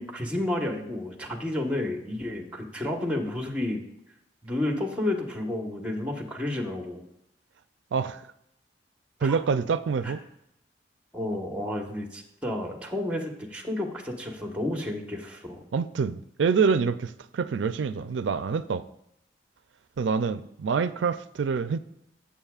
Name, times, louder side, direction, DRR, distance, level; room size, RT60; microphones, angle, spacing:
voice 1, 0.0-3.8 4.4-7.0 9.2-9.4 10.0-10.1 11.1-15.6, left 1 dB, 5° right, 1.2 m, -31 dB
voice 2, 7.9-8.2 9.2-10.2 15.7-18.8 20.0-21.8, right 5 dB, 90° right, 0.4 m, -26 dB
14.5 x 7.2 x 2.4 m
head